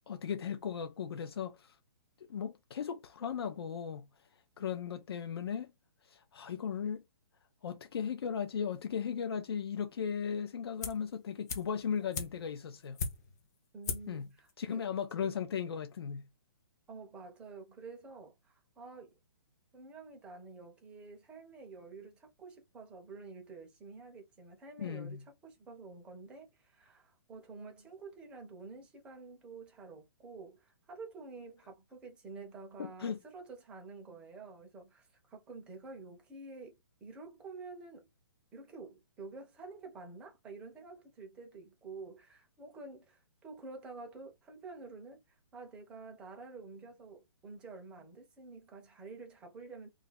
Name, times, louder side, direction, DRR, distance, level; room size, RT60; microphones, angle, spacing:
voice 1, 0.1-1.8 2.2-4.1 4.6-5.7 6.0-7.0 7.6-13.0 14.1-14.3 14.6-16.3 24.8-25.2 32.8-33.2, left 7 dB, 80° left, 0.5 m, -37 dB
sound 1, 10.8-11.1 11.5-13.5 13.8-14.2 14.5-14.6, left 5 dB, 45° left, 0.7 m, -39 dB
voice 2, 13.7-14.9 16.9-19.1 19.7-38.1 38.5-49.9, right 4 dB, 10° right, 0.5 m, -49 dB
2.4 x 2.2 x 3.8 m
hypercardioid pair, 165°, 13 cm